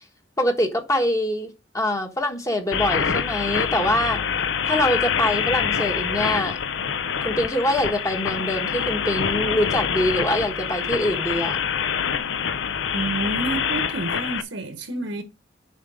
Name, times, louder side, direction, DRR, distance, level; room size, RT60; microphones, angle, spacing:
voice 1, 0.4-1.5 1.7-4.2 4.7-6.6 7.2-11.6, left 1 dB, 15° left, 1.2 m, -24 dB
sound 1, 2.7-14.4, left 7 dB, 70° left, 0.6 m, -25 dB
voice 2, 12.9-15.2, right 2 dB, 80° right, 1.4 m, -29 dB
7.4 x 5.1 x 5.0 m
head